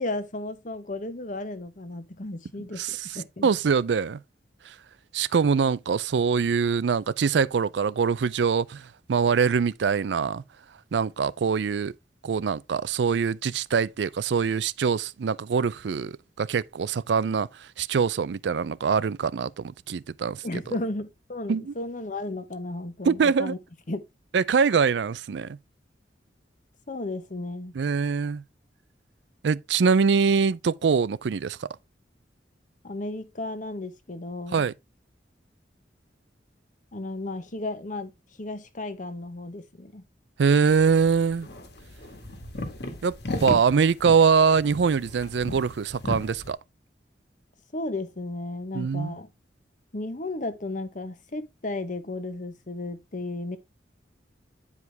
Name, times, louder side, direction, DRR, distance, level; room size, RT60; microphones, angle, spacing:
voice 1, 0.0-3.5 20.4-23.6 23.9-24.0 26.9-27.7 32.8-34.6 36.9-38.1 38.4-40.0 47.7-49.3 49.9-53.6, left 2 dB, 45° left, 1.0 m, -34 dB
voice 2, 2.8-4.2 4.7-4.8 5.1-10.4 10.9-11.9 12.2-20.4 21.5-21.7 23.0-23.5 24.3-25.6 27.7-28.4 29.4-31.7 34.5-34.7 40.4-41.5 43.0-46.6 48.7-49.1, right 6 dB, 80° right, 0.4 m, -23 dB
sound 1, 40.7-46.5, left 1 dB, 65° left, 1.7 m, -36 dB
9.6 x 4.9 x 3.4 m
head